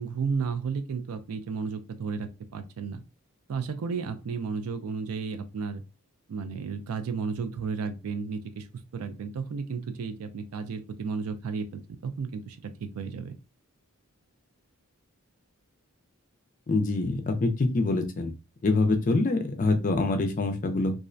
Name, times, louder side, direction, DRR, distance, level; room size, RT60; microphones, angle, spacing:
voice 1, 0.0-3.0 3.5-5.8 6.3-8.7 8.9-13.3, right 5 dB, 75° right, 0.4 m, -33 dB
voice 2, 16.7-18.3 18.6-20.9, left 2 dB, 35° left, 0.4 m, -25 dB
2.4 x 2.1 x 2.5 m
head